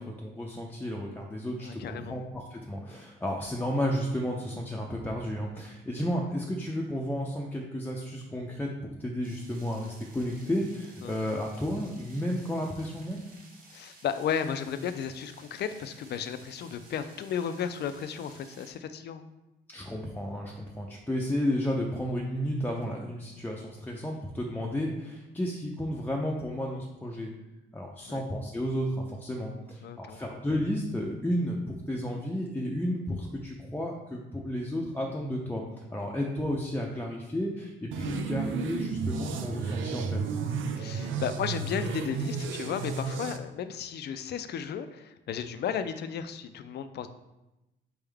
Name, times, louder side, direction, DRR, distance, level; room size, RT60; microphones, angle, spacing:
voice 1, 0.0-8.7 9.0-13.2 19.7-27.3 27.7-40.2, equal, 10° left, -2 dB, 0.6 m, -32 dB
voice 2, 1.6-2.2 11.0-11.2 13.7-19.3 28.1-28.2 29.8-30.2 40.8-47.1, left 8 dB, 55° left, 10 dB, 0.4 m, -34 dB
sound 1, 9.2-18.7, right 2 dB, 45° right, 1.3 m, -55 dB
sound 2, 37.9-43.4, right 5 dB, 75° right, 0.5 m, -33 dB
4.5 x 3.5 x 3.4 m, 0.99 s
cardioid pair, 90°, 20 cm